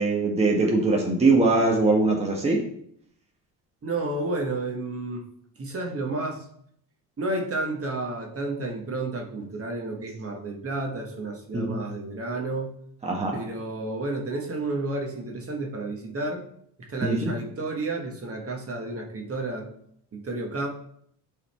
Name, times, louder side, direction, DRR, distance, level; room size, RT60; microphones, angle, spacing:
voice 1, 0.0-2.6 11.5-11.8 13.0-13.4 17.0-17.3, right 3 dB, 15° right, 0 dB, 1.2 m, -22 dB
voice 2, 3.8-5.2 5.6-6.4 7.2-12.8 13.3-16.4 16.8-19.7 20.1-20.7, right 2 dB, 35° right, 1 dB, 1.5 m, -31 dB
10.5 x 4.1 x 4.3 m, 0.67 s
cardioid pair, 120°, 40 cm